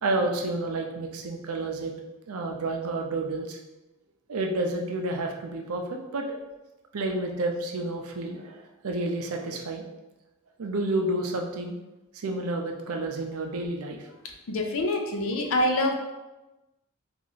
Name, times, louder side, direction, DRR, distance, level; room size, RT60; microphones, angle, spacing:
voice 1, 0.0-2.0 2.3-3.6 4.3-6.4 6.9-9.8 10.6-11.7 12.1-14.0, right 2 dB, 90° right, 2 dB, 0.5 m, -30 dB
voice 2, 14.5-15.9, left 1 dB, 65° left, 4 dB, 0.5 m, -25 dB
2.9 x 2.5 x 3.9 m, 1.0 s
head